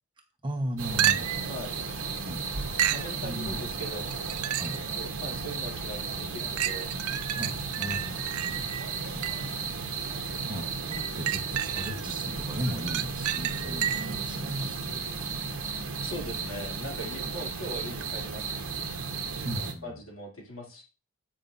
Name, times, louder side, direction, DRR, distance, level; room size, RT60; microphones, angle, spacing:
voice 1, 0.4-1.4 2.2-2.4 3.2-3.6 4.6-4.8 7.4-8.7 9.2-15.4 17.2-17.3 19.4-20.0, equal, 20° right, 2 dB, 1.1 m, -37 dB
sound 1, 0.8-19.7, right 5 dB, 65° right, 1.2 m, -34 dB
sound 2, 1.0-1.5 2.8-3.1 4.1-4.9 5.4-5.5 6.6-9.6 10.9-12.1 12.5-14.2 18.0-18.1, right 11 dB, 85° right, 0.4 m, -31 dB
voice 2, 1.5-1.8 2.9-4.1 5.0-6.9 16.0-18.5 19.8-20.8, equal, 70° left, -2 dB, 2.8 m, -40 dB
9.0 x 5.3 x 2.6 m, 0.32 s
head